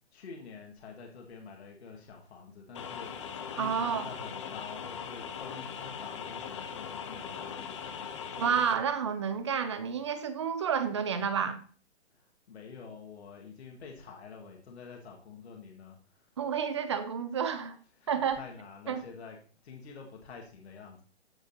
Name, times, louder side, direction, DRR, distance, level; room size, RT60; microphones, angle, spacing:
voice 1, 0.1-8.1 12.1-16.3 18.0-19.4 19.6-21.0, left 5 dB, 65° left, 1.9 m, -48 dB
sound 1, 2.7-8.7, left 7 dB, 25° left, 0.6 m, -40 dB
voice 2, 3.6-4.0 8.4-11.6 16.4-17.8 18.1-18.4 18.9-19.0, right 7 dB, 25° right, 0.5 m, -30 dB
14.0 x 5.0 x 2.8 m
hypercardioid pair, 155°, 35 cm